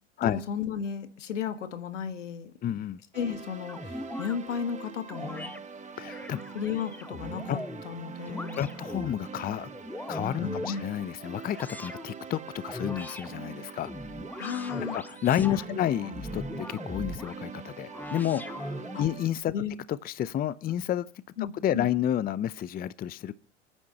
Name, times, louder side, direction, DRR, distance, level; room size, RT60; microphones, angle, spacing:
voice 1, 0.2-2.5 3.1-5.5 6.5-7.6 7.8-8.8 10.4-10.8 14.4-15.0 15.5-16.1 18.9-19.0 19.5-19.7 21.4-21.9, left 8 dB, 80° left, 1.6 m, -34 dB
voice 2, 2.6-3.0 6.0-6.4 7.5-7.6 8.5-9.7 10.1-13.9 14.9-19.5 19.9-21.1 21.6-23.3, left 11 dB, 25° left, 0.6 m, -30 dB
sound 1, 3.1-19.3, right 5 dB, 20° right, 1.6 m, -43 dB
sound 2, 3.7-4.4 5.1-5.6 6.0-7.8 8.3-9.2 9.6-10.8 11.5-12.1 12.6-13.3 13.8-15.6 16.1-17.3 17.9-19.1, left 1 dB, 5° left, 1.0 m, -39 dB
29.5 x 9.9 x 2.9 m
hypercardioid pair, 85°, 36 cm